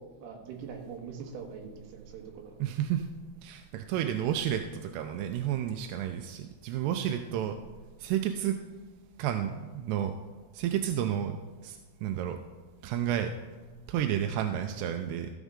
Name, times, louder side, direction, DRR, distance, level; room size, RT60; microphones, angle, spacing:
voice 1, 0.2-2.6, right 6 dB, 70° right, 1 dB, 3.1 m, -43 dB
voice 2, 2.6-3.1 3.4-7.6 8.0-8.6 9.2-10.1 10.5-12.4 12.8-13.3 13.9-15.3, right 10 dB, 85° right, 6 dB, 2.7 m, -31 dB
14.5 x 7.3 x 3.7 m, 1.4 s
omnidirectional pair, 4.8 m